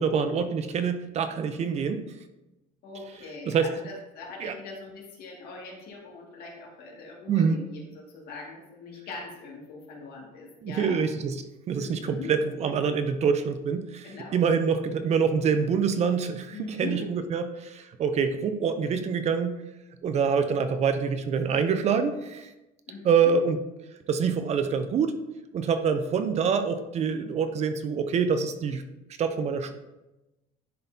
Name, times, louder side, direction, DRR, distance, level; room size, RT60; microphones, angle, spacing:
voice 1, 0.0-2.0 3.5-3.7 4.4-4.5 7.3-7.6 10.6-11.3 11.7-19.6 20.0-22.5 23.0-23.6 24.1-25.2 25.5-28.8 29.2-29.7, right 6 dB, 40° right, 9 dB, 0.5 m, -26 dB
voice 2, 2.8-11.0 11.8-12.3 14.0-14.4 16.5-17.1 22.9-23.3, left 3 dB, 60° left, -1 dB, 2.1 m, -41 dB
10.5 x 4.0 x 2.7 m, 0.99 s
cardioid pair, 125°, 18 cm